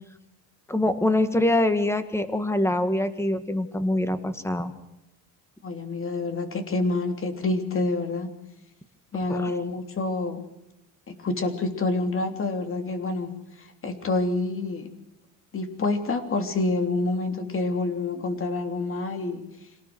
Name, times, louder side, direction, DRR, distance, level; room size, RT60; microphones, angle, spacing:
voice 1, 0.7-4.7 9.3-9.5, left 1 dB, 5° left, 10 dB, 1.9 m, -24 dB
voice 2, 5.6-8.3 9.1-10.4 11.1-14.9 15.5-19.4, left 3 dB, 30° left, 7 dB, 3.2 m, -27 dB
27.0 x 18.5 x 6.3 m, 0.90 s
cardioid pair, 130°, 40 cm